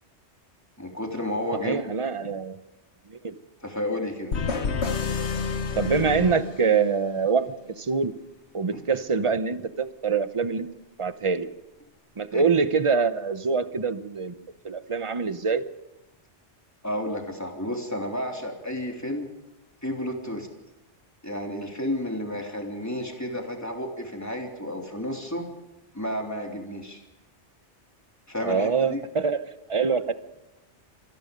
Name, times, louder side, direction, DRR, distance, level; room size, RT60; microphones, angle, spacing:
voice 1, 0.8-1.8 3.6-4.3 8.7-8.8 12.3-12.4 16.8-19.3 19.8-20.5 21.2-25.5 25.9-27.0 28.3-29.0, left 1 dB, 15° left, 1 dB, 3.5 m, -31 dB
voice 2, 1.6-2.6 3.1-3.3 5.8-7.4 7.8-8.1 8.5-10.7 11.0-11.5 12.2-14.3 14.6-15.6 28.4-29.4 29.7-30.1, right 5 dB, 30° right, 11 dB, 0.9 m, -25 dB
sound 1, 4.3-7.1, left 5 dB, 70° left, 1.6 m, -29 dB
26.0 x 19.0 x 5.3 m, 1.0 s
omnidirectional pair, 1.2 m